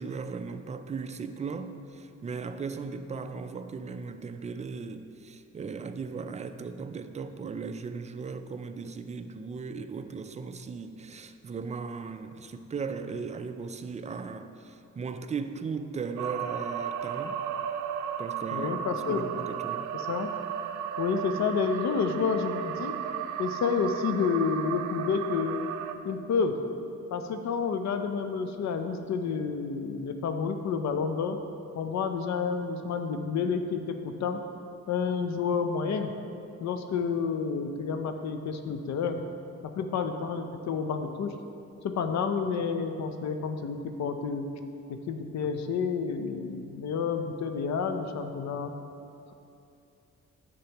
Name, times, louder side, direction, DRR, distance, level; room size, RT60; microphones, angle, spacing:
voice 1, 0.0-17.3 18.2-18.8 19.1-19.9, right 5 dB, 25° right, 9 dB, 0.4 m, -37 dB
sound 1, 16.2-25.9, right 9 dB, 75° right, 0.5 m, -34 dB
voice 2, 18.5-19.3 19.9-20.3 21.0-23.0 23.4-25.6 26.0-26.6 27.1-31.4 31.8-34.4 34.9-36.1 36.6-39.2 39.8-41.3 41.8-44.5 44.9-48.7, left 5 dB, 65° left, 7 dB, 0.7 m, -29 dB
10.0 x 6.7 x 3.0 m, 2.6 s
cardioid pair, 90°, 30 cm